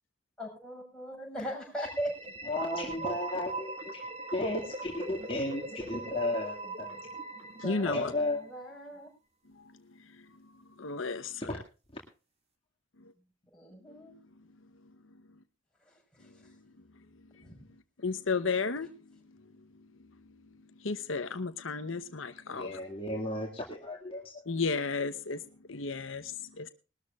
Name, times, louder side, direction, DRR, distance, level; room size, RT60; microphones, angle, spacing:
voice 1, 0.4-2.1 3.0-3.2 4.2-4.3 6.6-7.0 7.6-9.1 13.5-14.2 15.8-16.5 17.4-17.6, equal, 5° left, 6.3 m, -40 dB
sound 1, 1.7-8.5, right 2 dB, 30° right, 2.2 m, -41 dB
voice 2, 2.5-4.0 4.3-6.9 7.9-8.5 11.9-12.0 22.5-24.3, left 2 dB, 30° left, 2.2 m, -34 dB
voice 3, 7.6-8.1 9.6-9.7 10.0-10.3 10.8-11.6 16.4-16.5 17.3-17.4 18.0-19.1 20.8-22.8 24.5-25.4 25.7-26.7, left 4 dB, 75° left, 1.0 m, -33 dB
21.0 x 13.0 x 2.5 m
head